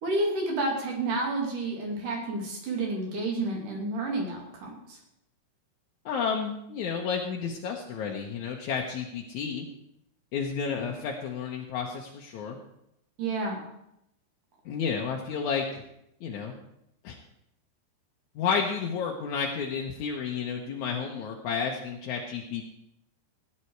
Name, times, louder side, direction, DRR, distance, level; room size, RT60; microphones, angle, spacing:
voice 1, 0.0-5.0 13.2-13.6, right 2 dB, 55° right, 0 dB, 3.7 m, -30 dB
voice 2, 6.0-9.6 10.3-12.6 14.6-15.8 16.2-16.6 17.0-17.2 18.3-22.6, left 6 dB, 75° left, 0 dB, 1.8 m, -31 dB
16.5 x 9.8 x 4.6 m, 0.81 s
omnidirectional pair, 4.8 m